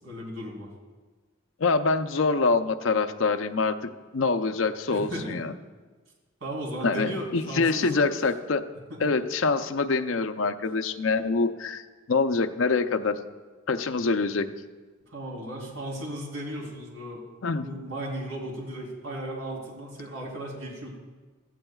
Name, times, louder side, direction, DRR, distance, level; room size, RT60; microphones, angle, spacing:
voice 1, 0.0-0.7 4.9-5.4 6.4-8.1 8.9-9.1 15.1-17.2 17.6-21.0, right 1 dB, 80° right, -2 dB, 3.5 m, -35 dB
voice 2, 1.6-5.5 6.8-8.6 9.0-13.2 13.7-14.5 17.4-17.7, left 4 dB, 70° left, 8 dB, 0.6 m, -25 dB
16.5 x 14.5 x 2.4 m, 1.3 s
head